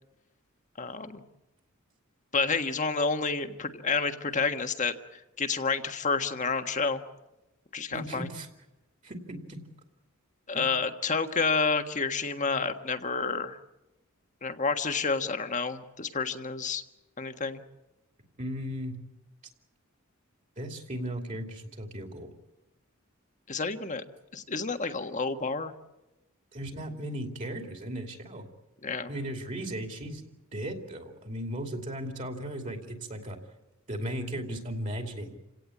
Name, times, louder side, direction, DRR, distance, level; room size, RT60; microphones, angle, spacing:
voice 1, 0.8-1.2 2.3-4.9 5.4-7.0 7.7-8.3 10.5-13.6 14.4-16.8 17.2-17.6 23.5-24.0 24.3-25.7 28.8-29.1, left 4 dB, 35° left, 8 dB, 1.5 m, -29 dB
voice 2, 7.9-8.5 9.0-9.6 10.5-10.7 18.4-18.9 20.6-22.3 26.5-28.5 29.1-30.2 30.5-33.4 33.9-35.4, equal, 35° right, 4 dB, 2.7 m, -36 dB
29.0 x 17.5 x 8.6 m, 0.98 s
head